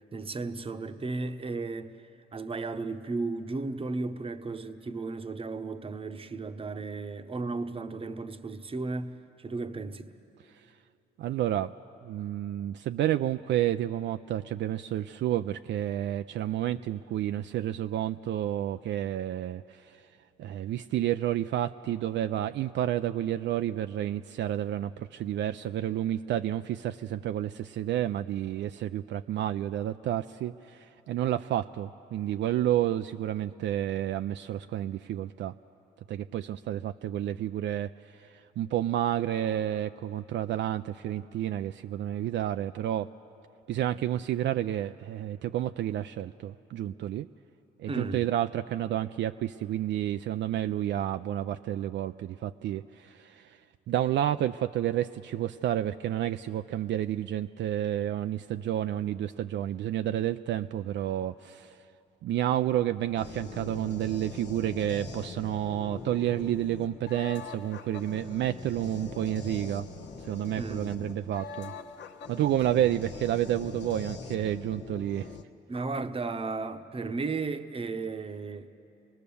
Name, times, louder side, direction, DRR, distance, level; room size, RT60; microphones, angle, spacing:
voice 1, 0.1-1.9 2.3-10.1 47.9-48.3 70.6-71.1 75.7-78.7, right 3 dB, 30° right, 0.9 m, -34 dB
voice 2, 11.2-11.7 12.0-20.0 20.4-35.5 36.1-37.9 38.2-43.1 43.7-47.3 47.8-53.6 53.9-61.8 62.2-69.8 70.2-71.7 72.3-75.3, right 12 dB, 65° right, 0.4 m, -30 dB
sound 1, 63.2-75.4, left 4 dB, 60° left, 1.2 m, -42 dB
25.0 x 18.5 x 7.0 m
cardioid pair, 90°, 20 cm